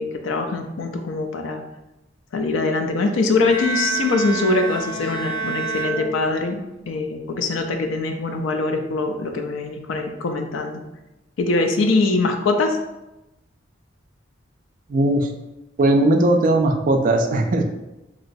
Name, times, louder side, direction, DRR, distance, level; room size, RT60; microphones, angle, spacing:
voice 1, 0.0-1.6 2.3-10.8 11.4-12.8, left 3 dB, 85° left, 5 dB, 0.4 m, -23 dB
Bowed string instrument, 3.4-6.8, right 4 dB, 25° left, 0.5 m, -28 dB
voice 2, 14.9-15.3 15.8-17.6, right 1 dB, 45° right, 4 dB, 0.3 m, -18 dB
3.0 x 2.8 x 2.6 m, 0.97 s
head